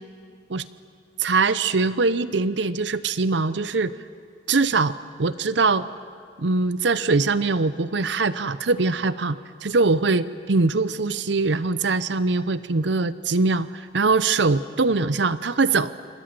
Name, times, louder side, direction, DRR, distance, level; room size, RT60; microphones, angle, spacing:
voice 1, 1.2-3.9 4.5-5.9 6.4-15.9, right 3 dB, 85° right, 15 dB, 0.7 m, -22 dB
28.5 x 26.0 x 7.6 m, 2.1 s
head